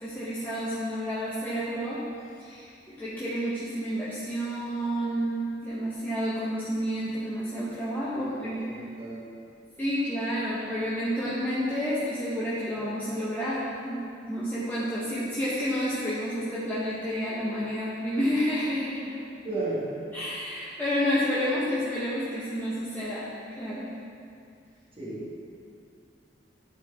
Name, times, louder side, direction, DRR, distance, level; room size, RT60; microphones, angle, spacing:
voice 1, 0.0-2.0 2.4-8.6 9.8-14.0 14.3-19.2 20.1-23.3 23.6-23.9, equal, 10° left, -10 dB, 1.1 m, -30 dB
voice 2, 8.1-9.2 19.4-19.9 25.0-25.3, right 2 dB, 30° right, -8 dB, 1.7 m, -34 dB
12.0 x 4.6 x 3.5 m, 2.5 s
head